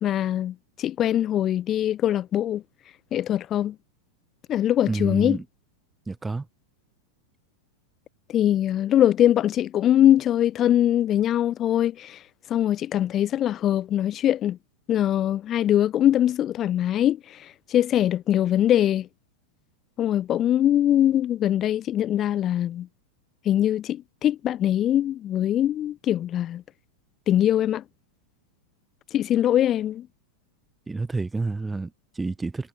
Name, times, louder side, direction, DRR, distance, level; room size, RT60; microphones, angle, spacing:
voice 1, 0.0-2.6 3.1-3.7 4.5-5.4 8.3-12.2 12.5-14.6 14.9-19.1 20.0-22.9 23.4-26.6 27.3-27.8 29.1-30.1, left 11 dB, 30° left, 1.2 m, -22 dB
voice 2, 4.9-5.4 6.1-6.5 30.9-32.7, right 3 dB, 10° right, 1.0 m, -29 dB
figure-of-eight pair, 90°, 0 cm